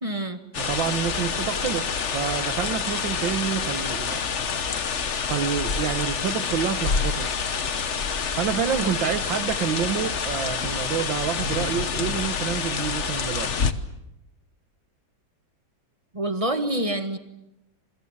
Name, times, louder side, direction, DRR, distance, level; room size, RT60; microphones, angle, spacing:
voice 1, 0.0-0.4 8.8-9.1 16.1-17.2, right 1 dB, 15° right, 1.6 m, -27 dB
sound 1, 0.5-13.7, left 6 dB, 40° left, 1.2 m, -27 dB
voice 2, 0.6-4.3 5.3-7.3 8.4-13.5, right 9 dB, 70° right, 2.0 m, -28 dB
28.0 x 23.5 x 7.4 m
omnidirectional pair, 2.2 m